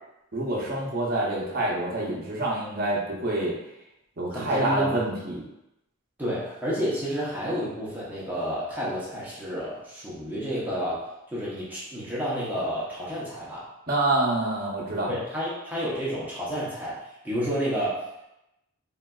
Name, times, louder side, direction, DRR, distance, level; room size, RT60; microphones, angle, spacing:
voice 1, 0.3-3.6 4.2-5.5 13.9-15.1, right 2 dB, 45° right, -4 dB, 0.7 m, -27 dB
voice 2, 4.3-5.0 6.2-13.7 15.1-18.0, equal, 10° right, -8 dB, 0.6 m, -30 dB
3.8 x 2.3 x 2.2 m, 0.88 s
head